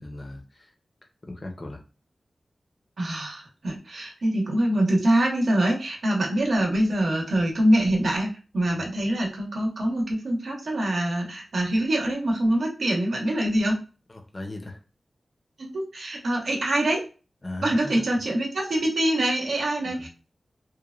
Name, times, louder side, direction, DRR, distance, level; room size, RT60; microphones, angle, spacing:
voice 1, 0.0-0.7 1.2-1.8 8.7-8.9 14.3-14.8 17.4-18.0 20.0-20.1, left 2 dB, 30° left, 3 dB, 0.5 m, -37 dB
voice 2, 3.0-13.8 15.6-17.0 17.6-20.1, right 1 dB, 70° right, 0 dB, 0.8 m, -24 dB
3.0 x 2.1 x 2.3 m, 0.34 s
wide cardioid pair, 105°, 0 cm